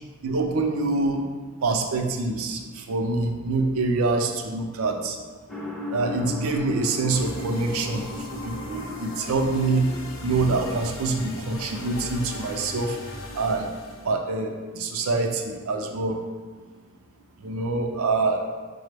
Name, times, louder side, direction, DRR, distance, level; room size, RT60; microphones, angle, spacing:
voice 1, 0.2-1.3 1.6-5.2 5.9-8.0 8.3-9.9 10.2-13.0 13.4-13.7 14.0-16.2 17.4-18.4, right 3 dB, 85° right, 4 dB, 0.5 m, -25 dB
sound 1, 5.5-13.6, left 2 dB, ahead, 0.5 m, -38 dB
sound 2, 7.1-14.2, left 1 dB, 70° left, 0.5 m, -39 dB
5.7 x 2.0 x 3.3 m, 1.4 s
head